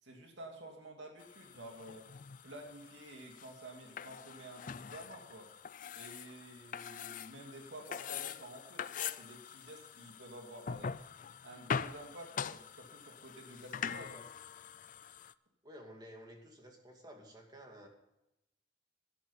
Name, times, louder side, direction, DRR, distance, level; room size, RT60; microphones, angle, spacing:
voice 1, 0.0-2.1 2.4-5.5 5.9-10.9 11.4-14.3, right 1 dB, 75° right, 1 dB, 2.5 m, -51 dB
sound 1, 1.2-15.3, left 7 dB, 45° left, 0.4 m, -43 dB
voice 2, 15.6-17.9, equal, 20° right, 2 dB, 2.4 m, -53 dB
12.0 x 11.5 x 5.5 m, 0.89 s
head